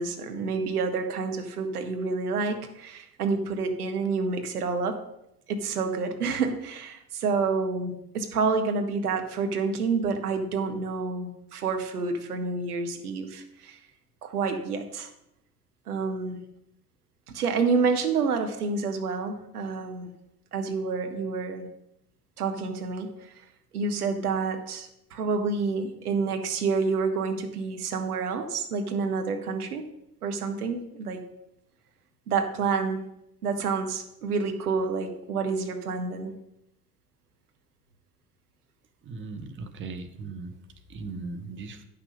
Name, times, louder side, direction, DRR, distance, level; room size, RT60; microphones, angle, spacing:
voice 1, 0.0-5.0 5.5-13.8 14.2-15.1 15.9-16.4 17.3-20.1 20.5-21.7 22.4-23.4 23.7-29.8 30.2-31.3 32.3-33.0 33.4-36.3, right 4 dB, 75° right, 6 dB, 1.1 m, -28 dB
voice 2, 39.1-40.5 40.9-41.8, right 3 dB, 25° right, 8 dB, 0.9 m, -38 dB
9.8 x 5.8 x 5.3 m, 0.80 s
figure-of-eight pair, 65°, 45 cm